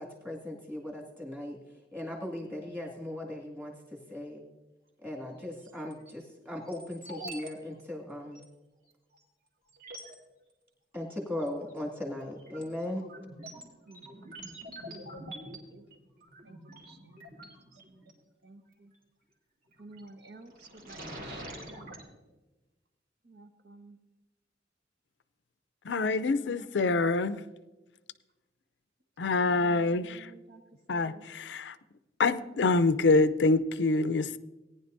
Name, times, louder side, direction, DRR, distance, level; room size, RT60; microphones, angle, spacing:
voice 1, 0.0-1.6 1.9-4.4 5.0-8.4 10.9-13.0, left 1 dB, 10° right, -1 dB, 2.1 m, -38 dB
sound 1, 5.7-6.1 6.7-7.5 7.8-7.9 8.3-8.5 9.2-9.3 9.7-10.2 11.4-11.8 12.2-18.1 19.7-20.1 20.5-22.0, right 1 dB, 50° right, 2.5 m, -46 dB
voice 2, 13.9-14.3 14.9-15.8 16.4-17.5 17.9-18.1 18.4-18.9 19.8-21.9 23.2-24.0 26.1-27.4 29.5-30.6 30.9-31.3 32.4-32.5, right 2 dB, 70° right, 6 dB, 1.2 m, -53 dB
voice 3, 25.9-27.4 29.2-30.3 30.9-31.7 32.2-34.4, left 3 dB, 85° left, 14 dB, 0.5 m, -26 dB
18.5 x 10.5 x 2.6 m, 1.1 s
head